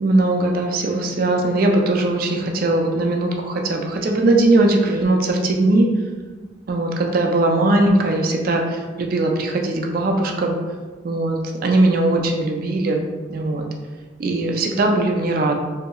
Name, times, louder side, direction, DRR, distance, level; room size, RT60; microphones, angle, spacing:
voice 1, 0.0-5.9 6.7-10.6 11.0-13.0 13.3-13.7 14.2-15.5, right 2 dB, 50° right, 2 dB, 0.4 m, -19 dB
3.8 x 2.7 x 2.3 m, 1.4 s
head